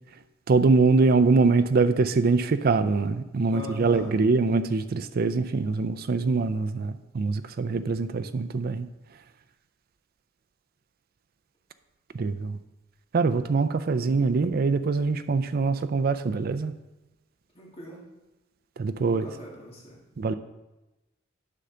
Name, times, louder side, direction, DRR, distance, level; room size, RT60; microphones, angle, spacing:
voice 1, 0.5-8.9 12.1-12.6 13.1-16.7 18.8-19.3 20.2-20.3, right 4 dB, 50° right, 10 dB, 0.4 m, -23 dB
voice 2, 3.5-4.1 17.5-18.0 19.0-20.4, equal, 30° left, -3 dB, 1.7 m, -42 dB
9.9 x 5.6 x 3.8 m, 1.0 s
head